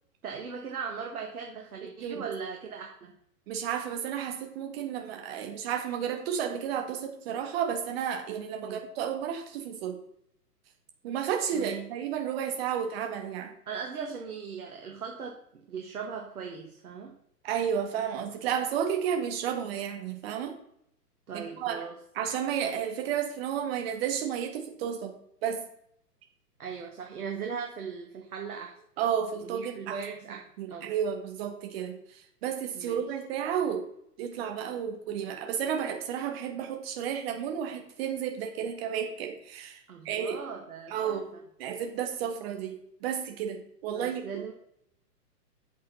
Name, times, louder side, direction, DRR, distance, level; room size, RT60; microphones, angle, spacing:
voice 1, 0.2-3.1 8.6-8.9 11.5-11.9 13.7-17.2 21.3-22.0 26.6-28.7 29.4-30.4 30.7-30.9 32.7-33.1 39.9-41.4 43.9-44.5, right 6 dB, 65° right, 1 dB, 1.9 m, -39 dB
voice 2, 2.0-2.3 3.5-9.9 11.0-13.5 17.4-20.5 21.3-21.8 22.2-25.1 25.4-25.6 29.0-30.0 30.6-33.9 34.2-39.8 40.1-40.3 40.9-41.2 41.6-44.2, right 8 dB, 40° right, 4 dB, 2.0 m, -32 dB
8.5 x 7.5 x 5.4 m, 0.72 s
figure-of-eight pair, 120°, 48 cm